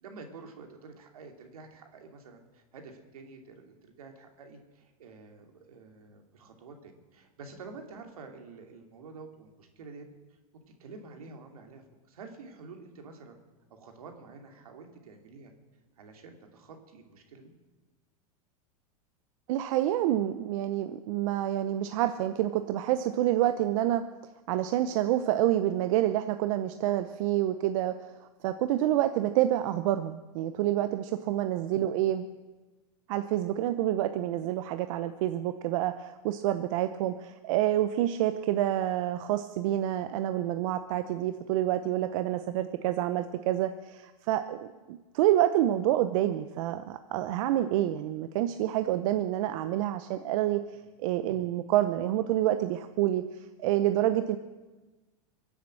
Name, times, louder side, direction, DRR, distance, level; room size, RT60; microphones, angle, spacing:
voice 1, 0.0-10.0 10.8-13.4 13.7-15.5 16.0-17.5 31.1-31.4 50.7-50.8, right 4 dB, 85° right, 3 dB, 2.8 m, -49 dB
voice 2, 19.5-24.0 24.5-28.1 28.4-32.3 33.1-50.6 51.0-54.4, right 13 dB, 65° right, 10 dB, 0.8 m, -28 dB
23.5 x 8.1 x 7.6 m, 1.2 s
hypercardioid pair, 115°, 18 cm